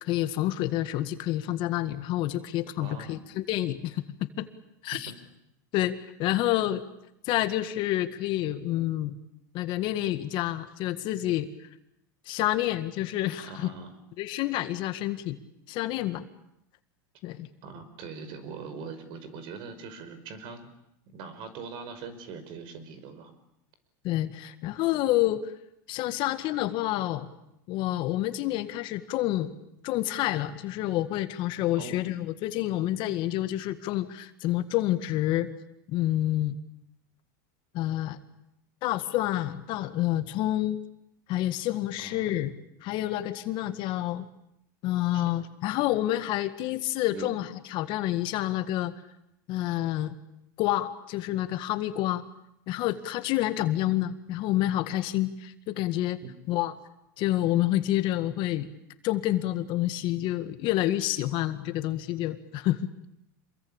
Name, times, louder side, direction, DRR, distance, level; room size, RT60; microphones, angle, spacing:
voice 1, 0.0-4.0 4.4-4.5 4.8-5.1 5.7-6.8 7.2-9.2 9.5-11.7 12.3-13.7 14.2-15.4 15.7-16.3 17.2-17.5 24.0-25.5 25.9-27.3 27.7-29.5 29.8-35.5 35.9-36.6 37.7-38.2 38.8-40.8 41.3-42.5 42.8-44.3 44.8-48.9 49.5-50.1 50.6-52.2 52.7-56.2 56.5-56.7 57.2-58.7 59.0-62.9, left 14 dB, 50° left, 10 dB, 1.8 m, -28 dB
voice 2, 2.8-3.2 5.1-5.2 13.4-13.9 17.6-20.7 21.1-23.3 31.8-32.0 42.0-42.3 45.1-45.3 47.1-47.3 56.2-56.3, right 5 dB, 50° right, 11 dB, 5.2 m, -41 dB
27.0 x 22.0 x 8.9 m, 0.81 s
supercardioid pair, 130°, 11 cm